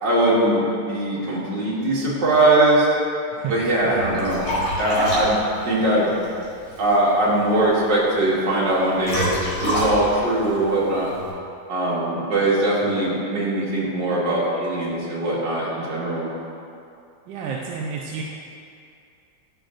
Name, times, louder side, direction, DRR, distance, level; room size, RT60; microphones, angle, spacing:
voice 1, 0.0-2.9 3.5-4.4 4.8-6.1 6.8-11.1 11.7-16.3, right 1 dB, 55° right, -7 dB, 2.2 m, -21 dB
voice 2, 3.3-4.1 12.8-13.0 17.3-18.2, right 6 dB, 70° right, -2 dB, 1.2 m, -31 dB
Liquid, 3.6-11.3, equal, 80° left, 2.9 m, -30 dB
13.0 x 5.8 x 2.5 m, 2.5 s
omnidirectional pair, 2.3 m